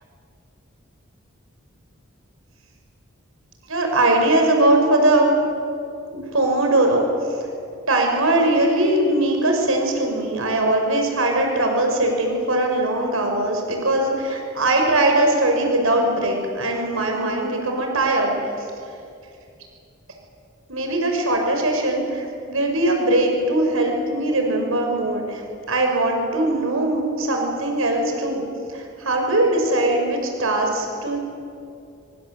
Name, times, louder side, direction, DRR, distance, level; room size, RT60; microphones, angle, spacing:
voice 1, 3.7-5.3 6.1-7.0 7.9-18.4 20.7-28.4 28.7-31.2, right 1 dB, 80° right, 2 dB, 5.8 m, -20 dB
25.0 x 24.0 x 8.0 m, 2.5 s
head